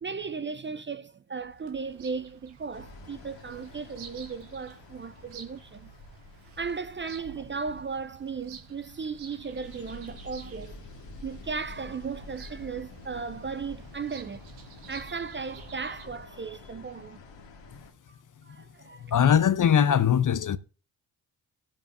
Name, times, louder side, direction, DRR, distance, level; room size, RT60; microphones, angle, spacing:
voice 1, 0.0-5.9 6.6-10.8 11.2-14.4 14.9-17.2 18.4-19.1, right 5 dB, 25° right, 0.5 m, -36 dB
Bird vocalization bird call bird song, 1.4-16.1, right 6 dB, 80° right, 1.5 m, -51 dB
sound 1, 2.7-17.9, left 3 dB, 65° left, 2.0 m, -49 dB
voice 2, 19.1-20.6, left 8 dB, 40° left, 0.8 m, -21 dB
18.5 x 7.3 x 2.6 m
hypercardioid pair, 40°, 46 cm